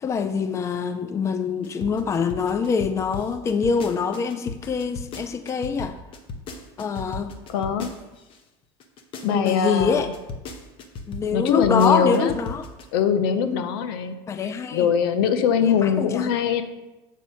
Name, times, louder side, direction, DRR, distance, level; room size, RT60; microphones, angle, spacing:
voice 1, 0.0-6.0 6.8-7.3 9.2-10.1 11.1-12.6 13.5-13.7 14.3-14.9 15.6-16.3, left 5 dB, 25° left, 10 dB, 0.5 m, -25 dB
sound 1, 1.6-8.4 8.8-12.8, left 3 dB, 45° left, 1.0 m, -36 dB
voice 2, 7.5-7.9 9.2-10.1 11.3-12.4 12.9-14.2 14.4-16.6, left 7 dB, 85° left, 10 dB, 0.7 m, -22 dB
7.5 x 4.2 x 5.6 m, 1.0 s
supercardioid pair, 120°, 12 cm